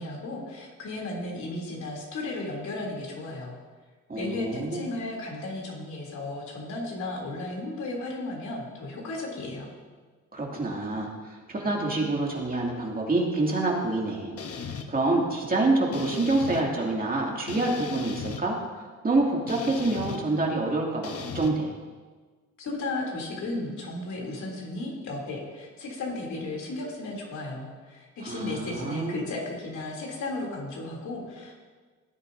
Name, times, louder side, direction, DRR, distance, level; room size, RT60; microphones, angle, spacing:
voice 1, 0.0-3.5 4.1-9.7 22.6-31.6, left 2 dB, 70° left, -2 dB, 3.1 m, -34 dB
voice 2, 4.1-4.8 10.3-11.1 11.5-18.6 19.0-21.7 28.2-29.1, right 2 dB, 30° right, -2 dB, 2.4 m, -27 dB
sound 1, 14.4-14.9 15.9-16.6 17.5-18.4 19.5-20.2 21.0-21.5, left 6 dB, 50° left, 1.0 m, -36 dB
17.0 x 8.8 x 2.7 m, 1.4 s
cardioid pair, 90°, 30 cm